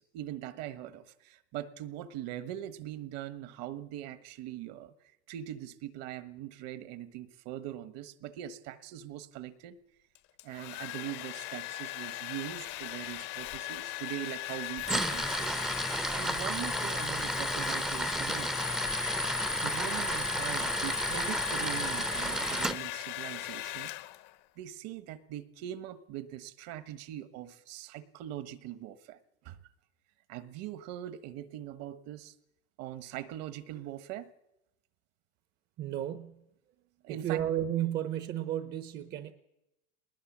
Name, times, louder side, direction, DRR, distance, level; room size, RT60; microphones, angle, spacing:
voice 1, 0.0-4.9 5.3-9.8 10.4-15.6 16.1-18.6 19.6-23.9 24.6-29.6 30.3-32.3 32.8-34.3 37.0-37.4, right 12 dB, 50° right, 13 dB, 1.2 m, -42 dB
Domestic sounds home sounds, 10.1-24.4, left 18 dB, 50° left, 1.0 m, -39 dB
Tools, 14.8-22.7, right 1 dB, ahead, 0.7 m, -32 dB
voice 2, 35.8-36.4 37.1-39.3, right 11 dB, 30° right, 11 dB, 0.9 m, -33 dB
20.0 x 20.0 x 7.3 m, 0.90 s
supercardioid pair, 155°, 33 cm